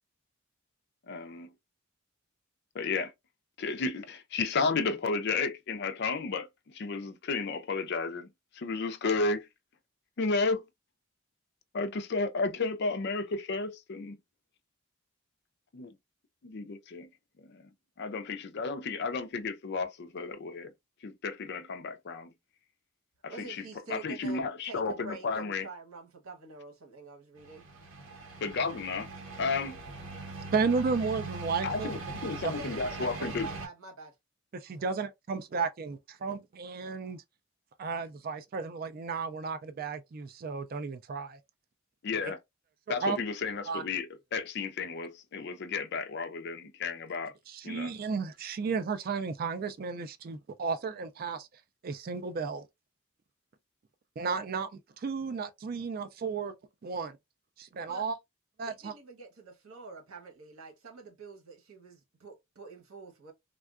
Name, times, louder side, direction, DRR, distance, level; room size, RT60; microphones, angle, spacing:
voice 1, 1.1-1.5 2.7-3.1 3.6-8.3 8.6-9.5 10.2-10.7 11.7-14.2 15.7-15.9 16.4-17.1 17.5-17.7 18.0-20.7 21.0-22.3 23.2-23.6 23.9-25.6 28.4-29.1 29.4-29.8 31.6-33.5 42.0-42.4 42.9-47.3 47.6-47.9, left 4 dB, 50° left, 0.5 m, -32 dB
voice 2, 23.3-24.4 24.7-27.7 32.5-34.1 34.8-35.0 57.9-58.1 58.6-63.3, right 3 dB, 90° right, 1.0 m, -47 dB
sound 1, 27.4-33.7, right 3 dB, 65° right, 1.0 m, -41 dB
voice 3, 30.5-31.9 32.4-32.5 34.6-37.2 37.8-41.4 42.2-42.3 43.0-43.2 43.7-43.8 47.5-51.5 51.8-52.7 54.2-56.5 56.8-57.2 57.6-58.1 58.6-58.9, right 5 dB, 45° right, 0.3 m, -33 dB
3.5 x 2.2 x 2.3 m
head